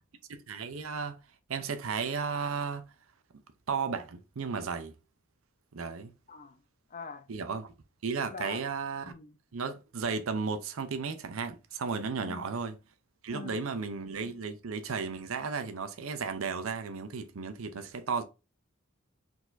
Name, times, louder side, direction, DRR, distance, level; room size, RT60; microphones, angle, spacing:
voice 1, 0.3-1.2 1.5-2.9 3.7-4.9 5.7-6.1 7.3-7.7 8.0-9.0 9.5-12.7 13.2-18.2, right 5 dB, 90° right, 0.6 m, -34 dB
voice 2, 6.3-6.6 6.9-7.3 8.3-8.8 9.0-9.4 12.2-12.5 13.3-13.6, left 4 dB, 40° left, 0.5 m, -43 dB
4.8 x 4.0 x 2.6 m
head